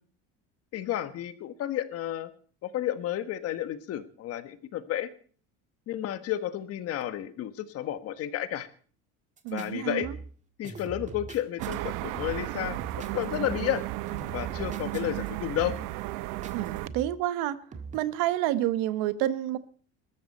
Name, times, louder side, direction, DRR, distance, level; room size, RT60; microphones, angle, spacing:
voice 1, 0.7-2.3 2.6-5.1 5.9-8.7 9.5-10.1 10.6-13.8 14.3-15.8, left 11 dB, 50° left, 1.5 m, -32 dB
sound 1, 9.4-9.7 10.0-10.4 10.6-11.8 12.1-12.5 12.8-13.8 14.1-15.3 15.6-16.0 16.4-17.2 17.7-18.0, right 4 dB, 20° right, 1.9 m, -42 dB
voice 2, 9.4-10.2 16.5-17.6 17.9-19.6, right 13 dB, 90° right, 1.2 m, -29 dB
sound 2, 11.6-16.9, right 18 dB, 75° right, 0.8 m, -34 dB
21.5 x 13.5 x 4.3 m
cardioid pair, 155°, 32 cm